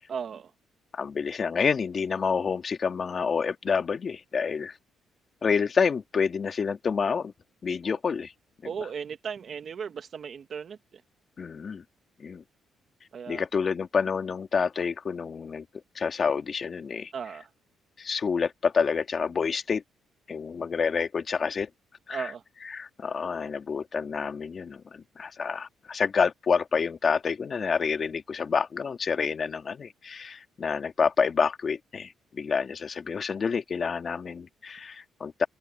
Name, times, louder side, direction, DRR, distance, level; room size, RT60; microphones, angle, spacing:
voice 1, 0.1-0.5 7.8-8.0 8.6-11.0 13.1-13.4 17.1-17.5 22.1-22.4, right 7 dB, 55° right, 1.4 m, -36 dB
voice 2, 0.9-4.8 5.4-7.3 7.6-8.3 8.6-8.7 11.4-11.8 12.2-12.4 13.3-15.7 15.9-17.1 18.0-19.8 20.3-21.7 22.1-22.3 22.7-35.5, left 5 dB, 45° left, 2.3 m, -28 dB
cardioid pair, 90°, 0 cm